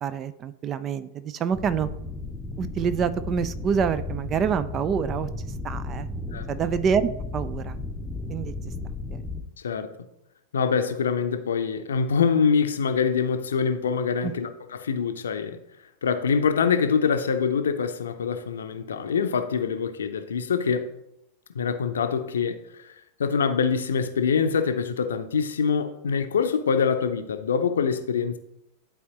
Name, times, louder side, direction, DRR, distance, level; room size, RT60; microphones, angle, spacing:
voice 1, 0.0-1.9 2.6-5.3 5.6-6.1 6.5-7.8 8.3-8.5 9.1-9.2 14.2-14.3, right 7 dB, 30° right, 0.4 m, -26 dB
sound 1, 1.5-9.4, left 2 dB, 10° left, 0.8 m, -34 dB
voice 2, 9.6-9.9 10.5-15.6 16.0-20.9 21.5-28.4, left 6 dB, 65° left, 0.6 m, -25 dB
11.0 x 4.2 x 3.0 m
figure-of-eight pair, 90°, 0 cm